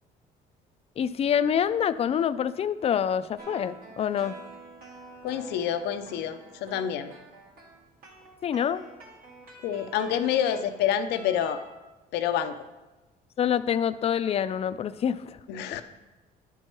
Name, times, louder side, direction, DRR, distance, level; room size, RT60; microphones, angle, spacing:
voice 1, 1.0-4.4 8.4-8.9 13.4-15.4, left 8 dB, 35° left, 13 dB, 0.4 m, -26 dB
sound 1, 3.4-11.8, right 3 dB, 60° right, 2.1 m, -48 dB
voice 2, 5.2-7.1 9.6-11.6 12.1-12.5 15.5-15.8, left 9 dB, 85° left, 9 dB, 0.6 m, -27 dB
10.5 x 4.6 x 4.5 m, 1.1 s
cardioid pair, 110°, 17 cm